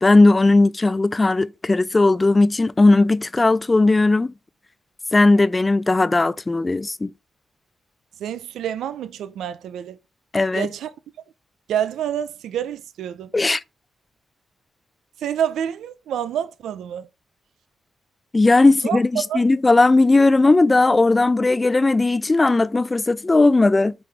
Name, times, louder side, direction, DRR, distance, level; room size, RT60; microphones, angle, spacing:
voice 1, 0.0-4.3 5.1-7.1 10.3-10.7 13.3-13.6 18.3-23.9, left 2 dB, 30° left, 0.6 m, -17 dB
voice 2, 8.2-10.0 10.5-10.9 11.7-13.3 15.2-17.1 18.8-19.0 19.3-19.4, right 9 dB, 80° right, 0.7 m, -27 dB
8.7 x 4.7 x 3.5 m
supercardioid pair, 45°, 0 cm